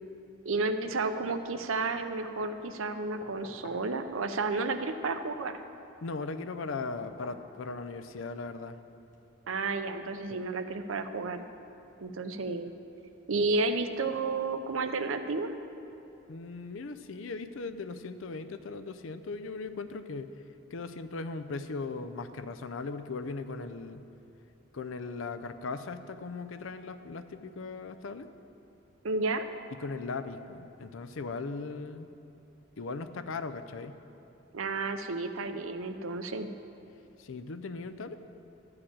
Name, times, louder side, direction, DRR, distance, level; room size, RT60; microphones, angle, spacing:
voice 1, 0.4-5.5 9.5-11.4 12.0-12.7 13.3-15.5 29.0-29.5 34.5-36.5, right 3 dB, 80° right, 8 dB, 0.6 m, -31 dB
sound 1, 3.2-3.9 6.8-7.5 9.1-9.2, left 1 dB, 40° left, 1.3 m, -48 dB
voice 2, 6.0-8.8 16.3-20.3 20.7-24.0 24.7-28.3 29.8-32.1 32.8-34.0 37.2-38.2, left 4 dB, 75° left, 10 dB, 0.5 m, -38 dB
12.0 x 4.8 x 8.7 m, 2.8 s
head